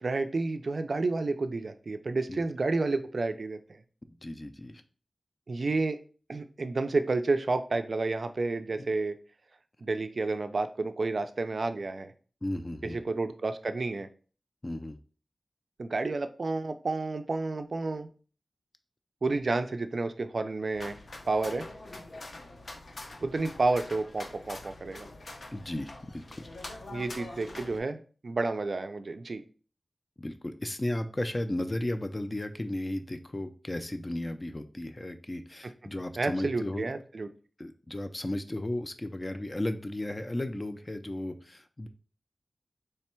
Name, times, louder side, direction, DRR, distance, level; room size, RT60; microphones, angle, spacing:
voice 1, 0.0-3.6 5.5-6.0 6.3-9.2 9.8-12.1 12.8-14.1 15.8-18.1 19.2-21.0 21.3-21.7 23.2-25.1 26.9-29.4 36.2-37.3, right 3 dB, 60° right, 9 dB, 0.3 m, -30 dB
voice 2, 4.1-4.8 8.8-8.9 12.4-13.0 14.6-15.0 25.5-26.5 30.2-36.9 37.6-41.9, left 1 dB, 25° left, 8 dB, 0.4 m, -35 dB
sound 1, 20.7-27.8, left 2 dB, 70° left, 0.6 m, -44 dB
3.3 x 2.2 x 4.3 m, 0.40 s
wide cardioid pair, 85°, 0 cm